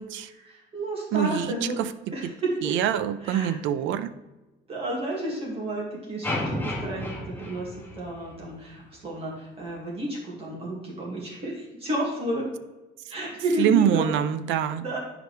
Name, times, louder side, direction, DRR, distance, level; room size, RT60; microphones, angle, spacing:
voice 1, 0.4-1.8 2.1-2.7 3.2-3.5 4.7-12.5 13.1-14.1 14.8-15.0, right 1 dB, 30° right, -3 dB, 2.0 m, -31 dB
voice 2, 1.1-1.9 2.6-4.1 13.6-14.8, right 10 dB, 80° right, 12 dB, 0.5 m, -25 dB
sound 1, 6.2-8.5, left 1 dB, 10° left, 1.0 m, -32 dB
10.0 x 4.9 x 3.2 m, 1.1 s
cardioid pair, 165°, 19 cm